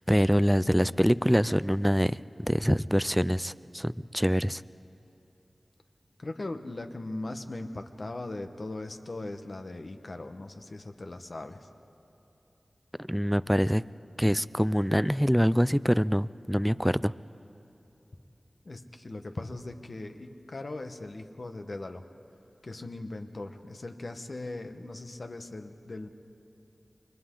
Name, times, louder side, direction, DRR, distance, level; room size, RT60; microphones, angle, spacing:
voice 1, 0.1-4.6 13.1-13.8 14.2-17.1, equal, ahead, 16 dB, 0.4 m, -25 dB
voice 2, 6.2-11.7 18.6-22.0 22.6-26.1, left 2 dB, 60° left, 6 dB, 1.2 m, -39 dB
29.0 x 23.5 x 3.9 m, 2.8 s
wide cardioid pair, 55°, 0 cm